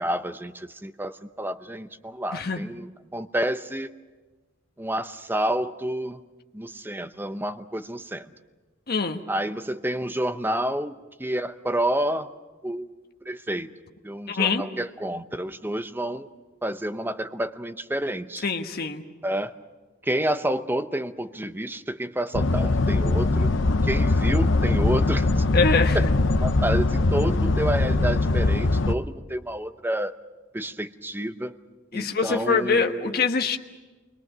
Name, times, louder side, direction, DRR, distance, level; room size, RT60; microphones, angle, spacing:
voice 1, 0.0-3.9 4.8-6.2 6.5-8.3 9.3-10.9 11.2-12.3 12.6-12.9 13.3-13.7 14.0-16.3 16.6-18.4 19.2-19.5 20.0-23.5 23.8-25.3 25.9-26.1 26.4-30.1 30.5-31.6 31.9-33.2, right 1 dB, 10° right, 9 dB, 0.8 m, -29 dB
voice 2, 2.3-2.6 8.9-9.2 14.3-14.7 18.4-19.0 25.5-26.1 31.9-33.6, left 4 dB, 55° left, 5 dB, 1.3 m, -24 dB
sound 1, 22.3-28.9, left 2 dB, 75° left, 0.8 m, -21 dB
28.5 x 22.0 x 6.1 m, 1.3 s
head